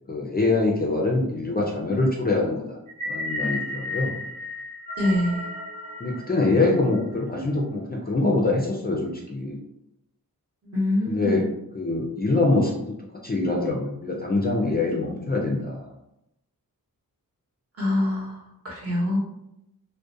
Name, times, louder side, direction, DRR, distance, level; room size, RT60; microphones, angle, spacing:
voice 1, 0.1-2.8 3.1-4.2 6.0-9.6 11.1-11.5 11.7-12.9 13.2-15.9, left 2 dB, 25° left, -2 dB, 0.4 m, -24 dB
sound 1, 2.9-7.2, left 2 dB, 20° right, 0.6 m, -33 dB
voice 2, 5.0-5.5 10.6-11.5 17.8-19.2, left 1 dB, 40° right, -4 dB, 0.9 m, -25 dB
2.4 x 2.2 x 2.6 m, 0.84 s
wide cardioid pair, 70°, 37 cm